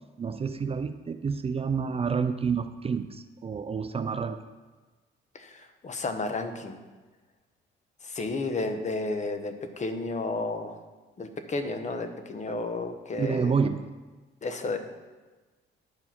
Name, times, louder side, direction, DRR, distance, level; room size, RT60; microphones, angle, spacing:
voice 1, 0.2-4.4 13.2-13.8, right 5 dB, 30° right, 9 dB, 0.4 m, -29 dB
voice 2, 5.3-6.8 8.0-10.8 11.2-13.6 14.4-14.8, left 3 dB, 35° left, 7 dB, 1.0 m, -32 dB
9.6 x 4.7 x 5.8 m, 1.3 s
cardioid pair, 90°, 20 cm